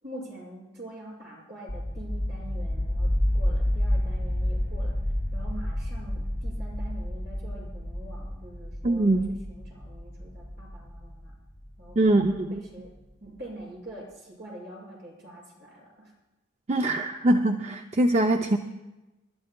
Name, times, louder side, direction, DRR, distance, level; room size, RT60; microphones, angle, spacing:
voice 1, 0.0-5.0 5.3-11.3 11.8-12.9 13.2-16.1, right 1 dB, 60° right, -3 dB, 6.0 m, -44 dB
sound 1, 1.7-12.4, left 1 dB, 5° left, 1.5 m, -30 dB
voice 2, 8.8-9.3 12.0-12.6 16.7-18.6, right 1 dB, 35° right, 5 dB, 0.5 m, -23 dB
29.5 x 12.5 x 2.2 m, 1.1 s
head